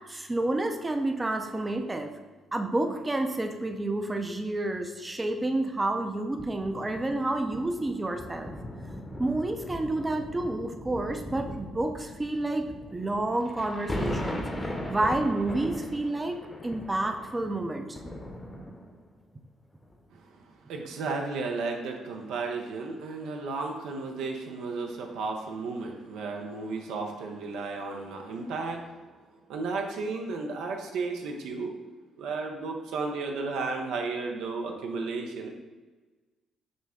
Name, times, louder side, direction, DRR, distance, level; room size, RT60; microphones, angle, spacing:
voice 1, 0.1-2.1 2.5-8.5 9.2-14.5 14.9-18.0, right 2 dB, 20° right, 5 dB, 0.5 m, -29 dB
sound 1, 6.3-19.1 19.8-20.0, left 1 dB, 20° left, 0.8 m, -39 dB
voice 2, 20.7-29.0 29.5-31.7 32.2-35.5, right 3 dB, 75° right, 2 dB, 0.5 m, -33 dB
6.2 x 2.1 x 3.6 m, 1.3 s
hypercardioid pair, 50°, 0 cm